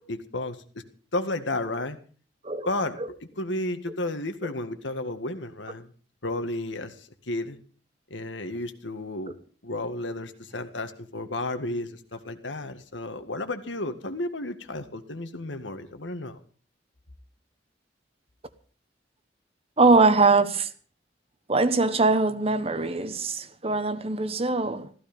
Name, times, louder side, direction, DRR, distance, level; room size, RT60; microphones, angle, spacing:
voice 1, 0.1-0.6 1.1-2.0 2.7-3.0 3.4-5.9 6.2-7.6 8.1-9.4 9.6-16.4, left 2 dB, 85° left, 1.9 m, -32 dB
voice 2, 19.8-20.7 21.5-24.9, right 3 dB, 30° right, 1.1 m, -22 dB
15.0 x 15.0 x 5.2 m
head